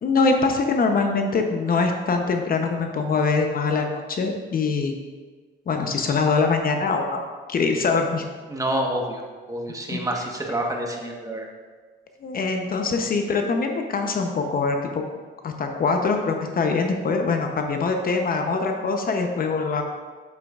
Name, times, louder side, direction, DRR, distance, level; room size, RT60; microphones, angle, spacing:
voice 1, 0.0-4.9 5.7-8.3 9.9-10.2 12.2-15.0 15.4-19.8, left 4 dB, 45° left, 4 dB, 0.7 m, -23 dB
voice 2, 8.5-9.2 9.5-11.4, right 1 dB, 15° right, 0 dB, 1.2 m, -27 dB
8.0 x 7.6 x 2.4 m, 1.5 s
cardioid pair, 90°, 20 cm